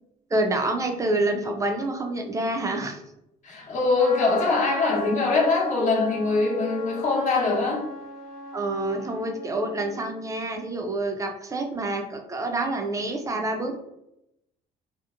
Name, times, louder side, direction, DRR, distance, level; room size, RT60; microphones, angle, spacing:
voice 1, 0.3-3.0 8.5-13.8, right 2 dB, 20° right, 3 dB, 0.4 m, -27 dB
voice 2, 3.4-7.9, left 3 dB, 45° left, -2 dB, 0.9 m, -23 dB
Trumpet, 3.9-10.2, left 1 dB, 90° left, 1.0 m, -38 dB
2.8 x 2.0 x 2.4 m, 0.82 s
cardioid pair, 110°, 17 cm